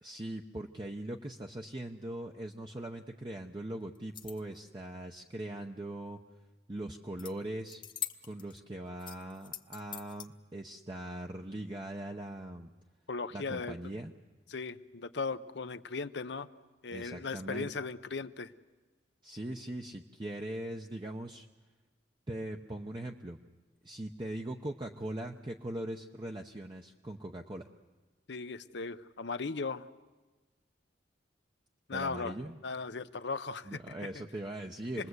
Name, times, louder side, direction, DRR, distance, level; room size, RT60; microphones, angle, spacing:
voice 1, 0.0-6.2 6.7-7.8 8.2-12.7 13.3-14.1 16.9-17.7 19.2-21.5 22.3-23.4 23.8-27.7 31.9-32.6 33.6-35.1, right 1 dB, 25° right, 2 dB, 0.8 m, -40 dB
sound 1, 3.9-4.6 7.2-7.3 7.6-8.6 9.0-10.3, left 11 dB, 25° left, 1.0 m, -42 dB
voice 2, 13.1-13.7 14.5-16.5 16.8-18.5 28.3-29.9 31.9-32.4 32.6-33.8, left 4 dB, 65° left, 11 dB, 0.8 m, -37 dB
28.0 x 20.5 x 8.1 m, 1.3 s
head